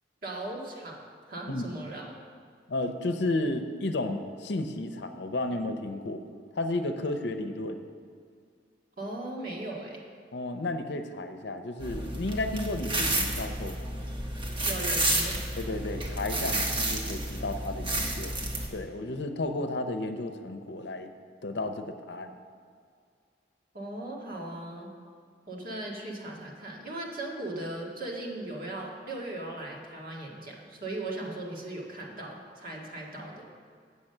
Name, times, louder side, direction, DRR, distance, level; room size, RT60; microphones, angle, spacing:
voice 1, 0.2-1.0 1.3-2.1 9.0-10.0 14.6-15.4 23.7-24.9 25.5-33.4, right 2 dB, 55° right, -2 dB, 1.8 m, -38 dB
voice 2, 2.7-6.2 6.6-7.8 10.3-13.8 15.6-18.3 18.7-21.1 21.4-22.4, left 2 dB, 65° left, 7 dB, 0.7 m, -32 dB
sound 1, 11.8-18.7, right 1 dB, 30° right, 1.1 m, -31 dB
8.4 x 7.3 x 6.6 m, 2.1 s
head